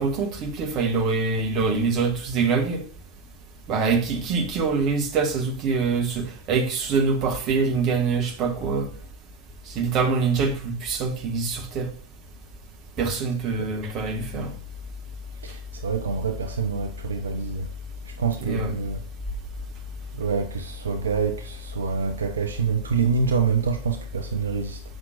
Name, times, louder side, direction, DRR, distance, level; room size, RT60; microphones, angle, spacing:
voice 1, 0.0-2.8 3.7-8.9 9.7-11.9 13.0-14.5 18.4-18.8, right 4 dB, 35° right, 1.3 m, -24 dB
voice 2, 15.4-17.7 18.1-19.0 20.1-24.8, right 5 dB, 70° right, 0.5 m, -26 dB
7.7 x 5.8 x 2.4 m
figure-of-eight pair, 90°, 0 cm